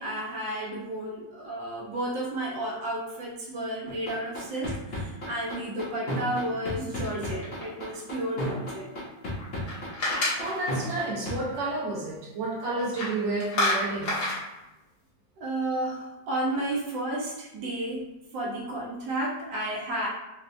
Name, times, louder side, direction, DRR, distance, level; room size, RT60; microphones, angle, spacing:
voice 1, 0.0-8.9 15.4-20.1, right 1 dB, 75° right, -3 dB, 1.3 m, -32 dB
sound 1, 3.9-11.3, equal, 55° left, 0.6 m, -32 dB
sound 2, 7.0-8.0 9.4-11.0 12.8-13.1 13.4-14.4, left 1 dB, 80° left, 1.9 m, -29 dB
voice 2, 10.4-14.2, right 2 dB, 45° right, -5 dB, 1.0 m, -31 dB
4.4 x 2.1 x 2.5 m, 0.97 s
omnidirectional pair, 2.0 m